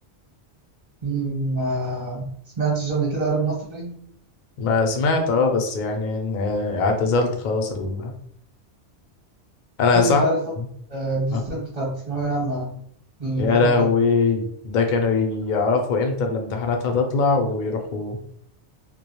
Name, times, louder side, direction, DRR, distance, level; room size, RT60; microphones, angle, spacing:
voice 1, 1.0-2.3 2.6-4.0 9.9-10.4 10.9-12.8 13.2-13.9, right 2 dB, 40° right, -4 dB, 0.9 m, -26 dB
voice 2, 4.6-8.1 9.8-10.2 11.3-11.4 13.4-18.2, left 4 dB, 60° left, 3 dB, 0.5 m, -21 dB
2.2 x 2.0 x 2.8 m, 0.67 s
omnidirectional pair, 1.2 m